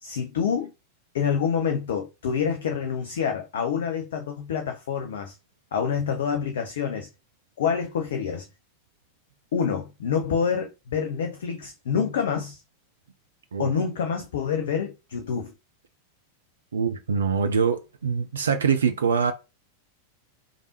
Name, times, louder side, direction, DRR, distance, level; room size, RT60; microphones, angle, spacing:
voice 1, 0.0-0.7 1.1-5.4 5.7-7.1 7.6-8.5 9.5-12.6 13.6-15.5, left 7 dB, 60° left, 0.5 m, -27 dB
voice 2, 16.7-19.3, right 6 dB, 70° right, 0.3 m, -24 dB
3.3 x 2.4 x 2.8 m
figure-of-eight pair, 90°, 0 cm